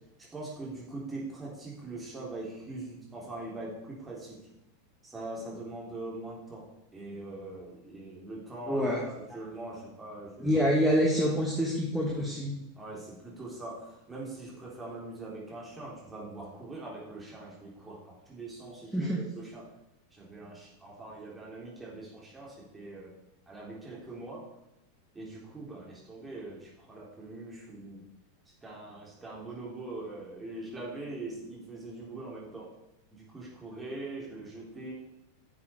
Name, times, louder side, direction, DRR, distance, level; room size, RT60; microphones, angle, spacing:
voice 1, 0.2-4.4 5.0-6.6 6.9-10.5 12.8-19.7 20.1-23.1 23.5-24.4 25.1-28.0 28.5-32.7 33.1-34.9, right 2 dB, 15° right, -5 dB, 3.6 m, -42 dB
voice 2, 8.7-9.0 10.4-12.5 18.9-19.2, equal, 5° left, -3 dB, 2.2 m, -26 dB
11.0 x 7.2 x 4.8 m, 0.89 s
figure-of-eight pair, 90°, 0 cm